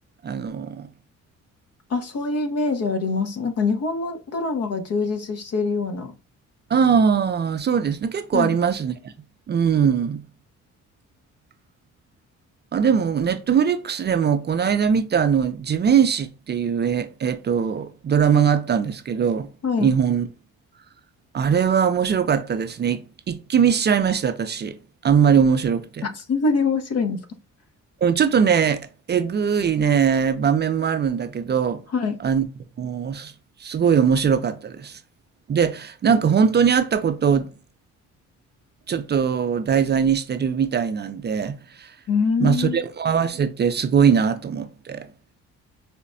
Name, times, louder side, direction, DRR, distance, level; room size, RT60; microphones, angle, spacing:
voice 1, 0.2-0.9 6.7-9.1 9.5-10.2 12.7-19.5 19.8-20.3 21.3-24.8 25.0-26.1 28.0-31.8 32.2-32.5 32.8-33.3 33.6-35.0 35.5-37.5 38.9-41.9 42.4-45.1, right 7 dB, 35° right, 0.4 m, -21 dB
voice 2, 1.9-6.1 8.3-8.6 19.6-19.9 26.0-27.2 31.9-32.1 42.1-42.8, left 4 dB, 55° left, 0.8 m, -24 dB
4.9 x 2.1 x 2.5 m
cardioid pair, 90°, 30 cm